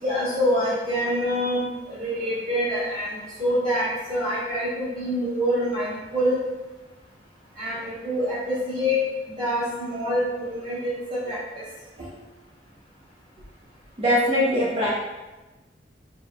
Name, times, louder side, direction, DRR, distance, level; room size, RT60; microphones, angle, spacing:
voice 1, 0.0-1.6 1.9-6.4 7.5-9.0 9.4-11.6 12.0-12.1, equal, 50° right, -13 dB, 1.4 m, -26 dB
voice 2, 14.0-14.9, left 1 dB, 35° right, -9 dB, 0.9 m, -21 dB
5.1 x 3.5 x 2.3 m, 1.1 s
head